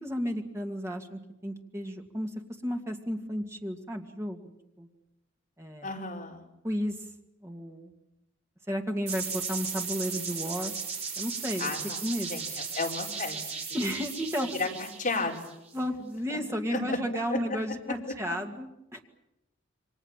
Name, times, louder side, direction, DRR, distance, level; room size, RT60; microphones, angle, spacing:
voice 1, 0.0-2.3 2.6-4.4 4.8-4.9 5.6-5.9 6.6-7.0 7.4-7.9 8.7-10.7 11.2-11.7 12.0-12.4 13.7-14.5 15.7-19.0, equal, 15° right, 3 dB, 2.3 m, -33 dB
voice 2, 5.8-6.4 11.6-12.0 12.3-12.4 12.8-13.4 14.4-15.6 16.3-16.4 16.7-17.0 17.3-17.4, left 3 dB, 40° left, -1 dB, 4.8 m, -32 dB
sound 1, 9.1-15.8, right 5 dB, 30° right, 6.1 m, -36 dB
28.5 x 24.5 x 7.5 m, 0.88 s
head